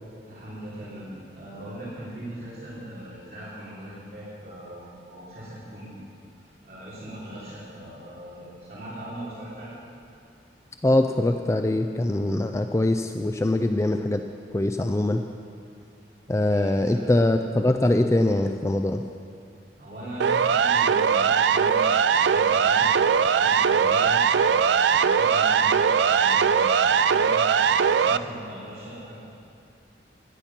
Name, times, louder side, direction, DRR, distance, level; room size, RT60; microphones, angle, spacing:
voice 1, 0.3-6.0 6.3-9.8 16.3-17.2 19.8-29.1, right 1 dB, 55° right, -9 dB, 3.2 m, -40 dB
voice 2, 10.8-14.2 14.5-15.2 16.3-19.0, left 1 dB, 15° left, 6 dB, 0.4 m, -23 dB
Siren, 20.2-28.2, right 6 dB, 80° right, 0.4 m, -20 dB
16.0 x 10.0 x 5.9 m, 2.5 s
head